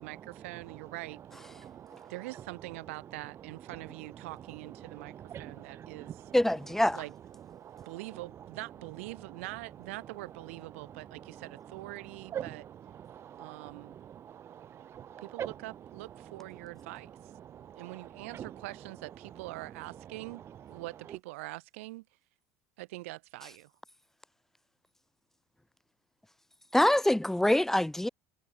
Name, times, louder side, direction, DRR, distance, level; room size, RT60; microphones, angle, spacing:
voice 1, 0.0-1.4 2.1-6.2 6.9-7.1 7.9-12.6 13.4-14.0 15.2-17.1 17.8-20.4 20.7-22.0 22.8-23.7, right 21 dB, 80° right, 4.0 m, -44 dB
voice 2, 1.6-2.1 5.3-5.4 6.0-6.1 7.6-7.9 12.3-12.5 13.0-13.7 14.2-15.5 17.7-17.8 18.3-18.5, right 9 dB, 35° right, 0.5 m, -42 dB
voice 3, 6.3-7.0 26.7-28.1, left 1 dB, 5° left, 1.4 m, -25 dB
hypercardioid pair, 90°, 7 cm